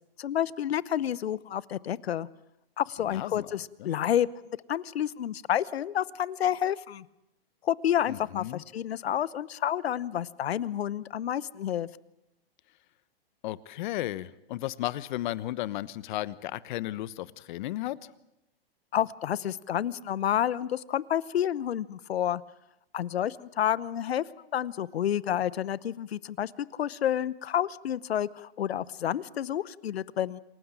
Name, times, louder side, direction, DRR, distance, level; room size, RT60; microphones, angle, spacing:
voice 1, 0.2-2.3 2.8-4.3 4.7-7.1 7.6-11.9 18.9-22.4 22.9-30.4, left 10 dB, 85° left, 20 dB, 1.0 m, -29 dB
voice 2, 3.1-3.5 3.8-3.9 8.1-8.6 13.4-18.0, left 15 dB, 50° left, 18 dB, 1.1 m, -34 dB
27.5 x 16.0 x 9.0 m, 0.87 s
hypercardioid pair, 140°, 30 cm